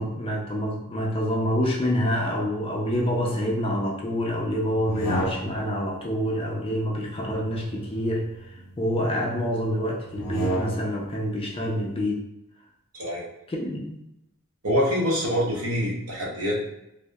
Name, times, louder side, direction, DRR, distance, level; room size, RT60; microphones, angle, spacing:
voice 1, 0.0-8.2 8.8-12.2 13.5-14.0, equal, 25° left, -1 dB, 0.4 m, -27 dB
sound 1, 4.7-5.8 7.1-8.8 10.1-11.1, equal, 90° left, 0.6 m, -33 dB
voice 2, 12.9-13.3 14.6-16.6, equal, 75° right, -4 dB, 0.8 m, -25 dB
2.8 x 2.0 x 2.2 m, 0.85 s
head